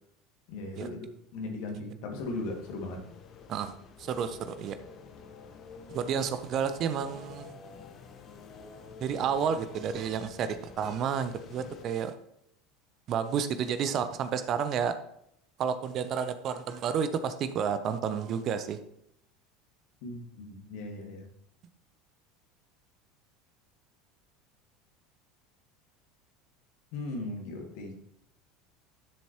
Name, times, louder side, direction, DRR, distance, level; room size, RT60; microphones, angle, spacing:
voice 1, 0.5-3.1 20.0-21.3 26.9-28.1, left 2 dB, 55° left, 2 dB, 2.2 m, -38 dB
sound 1, 2.2-11.9, left 5 dB, 40° left, 1.0 m, -49 dB
voice 2, 4.0-4.8 5.9-7.5 9.0-12.1 13.1-14.9 15.6-18.8, right 7 dB, 40° right, 11 dB, 0.7 m, -31 dB
11.5 x 7.1 x 3.0 m, 0.73 s
figure-of-eight pair, 70°, 0 cm